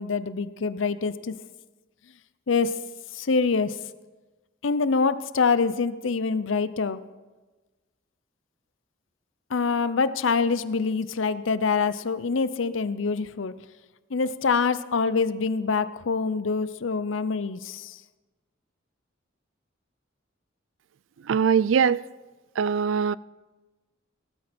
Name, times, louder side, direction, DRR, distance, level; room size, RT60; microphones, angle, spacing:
voice 1, 0.0-1.3 2.5-2.7 3.1-3.8 4.6-7.0 9.5-13.5 14.1-18.0, left 4 dB, 85° left, 0.6 m, -25 dB
voice 2, 21.3-22.0 22.6-23.2, right 7 dB, 80° right, 0.4 m, -21 dB
18.0 x 12.5 x 4.4 m
head